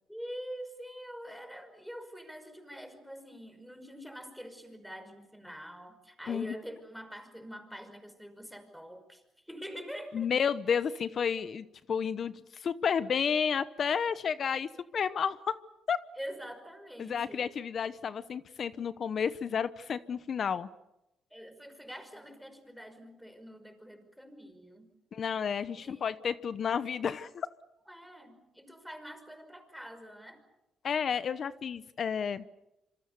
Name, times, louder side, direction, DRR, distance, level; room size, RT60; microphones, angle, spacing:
voice 1, 0.1-10.3 16.2-17.5 21.3-24.9 25.7-26.1 27.9-30.4, equal, ahead, 7 dB, 5.5 m, -45 dB
voice 2, 10.1-15.6 15.9-16.0 17.0-20.7 25.1-27.5 30.8-32.4, left 7 dB, 55° left, 14 dB, 0.9 m, -31 dB
27.0 x 25.5 x 6.9 m, 0.90 s
cardioid pair, 90°, 0 cm